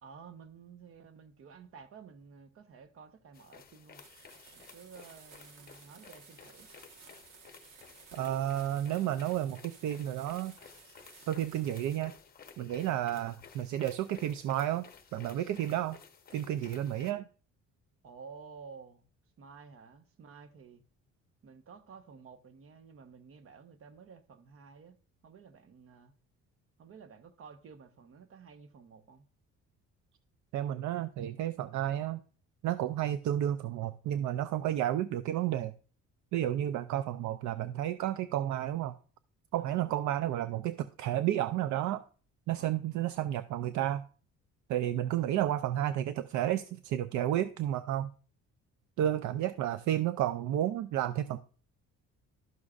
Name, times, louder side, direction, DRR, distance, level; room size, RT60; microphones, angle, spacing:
voice 1, 0.0-4.0 4.5-6.7 18.0-19.0 19.4-20.8 21.4-25.0 25.2-26.1 26.8-29.2 39.6-39.8 42.6-42.8, right 5 dB, 45° right, 0.9 m, -52 dB
sound 1, 3.3-17.1, left 6 dB, 30° left, 0.9 m, -55 dB
sound 2, 4.0-12.0, right 6 dB, 85° right, 1.4 m, -57 dB
voice 2, 8.1-10.5 11.3-12.1 12.6-14.9 15.1-16.0 16.3-17.3 30.5-32.2 32.6-35.7 36.3-38.9 39.5-42.0 42.5-44.0 44.7-48.1 49.0-51.4, right 12 dB, 65° right, 0.5 m, -31 dB
12.0 x 6.3 x 2.4 m
cardioid pair, 140°, 31 cm